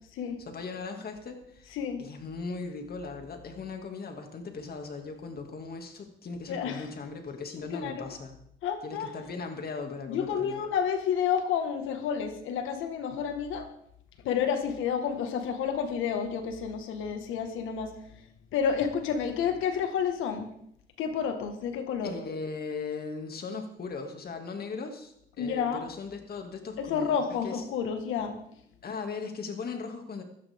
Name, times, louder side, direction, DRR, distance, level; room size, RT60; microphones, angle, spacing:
voice 1, 0.5-8.4 8.8-10.6 22.0-27.6 28.8-30.2, left 4 dB, 50° left, 5 dB, 2.4 m, -38 dB
voice 2, 1.7-2.0 6.5-6.8 7.6-8.1 8.6-9.1 10.1-13.7 14.2-18.2 18.5-20.5 21.0-22.1 25.4-25.9 26.8-28.4, left 7 dB, 90° left, 7 dB, 1.8 m, -30 dB
16.5 x 12.5 x 3.7 m, 0.73 s
cardioid pair, 90°, 20 cm